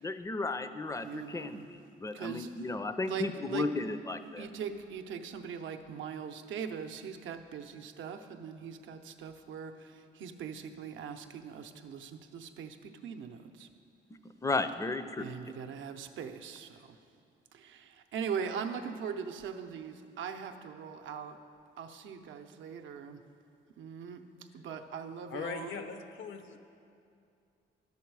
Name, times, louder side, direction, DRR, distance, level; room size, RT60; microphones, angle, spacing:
voice 1, 0.0-4.5 14.4-15.2, left 3 dB, 15° left, 11 dB, 0.4 m, -34 dB
voice 2, 1.0-1.7 2.1-2.5 3.1-3.7 4.4-13.7 15.2-16.9 17.5-21.4 21.8-23.2 23.8-24.2 24.5-25.8, right 7 dB, 80° right, 7 dB, 0.7 m, -41 dB
voice 3, 25.3-26.6, left 5 dB, 75° left, 8 dB, 0.8 m, -40 dB
11.0 x 7.1 x 4.7 m, 2.5 s
cardioid pair, 90°, 20 cm